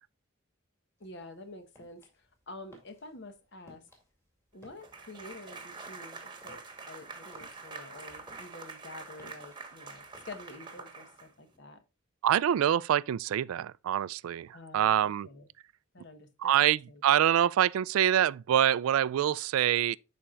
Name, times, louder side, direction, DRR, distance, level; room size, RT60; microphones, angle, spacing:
voice 1, 1.0-3.9 4.5-6.6 6.9-11.8 14.5-15.5 15.9-17.0, left 2 dB, 55° left, 1.1 m, -48 dB
sound 1, 1.0-10.5, left 1 dB, 10° left, 2.3 m, -61 dB
sound 2, 4.8-11.6, right 4 dB, 20° right, 1.2 m, -46 dB
voice 2, 12.2-15.3 16.4-20.0, right 10 dB, 85° right, 0.3 m, -25 dB
11.5 x 4.4 x 2.4 m
head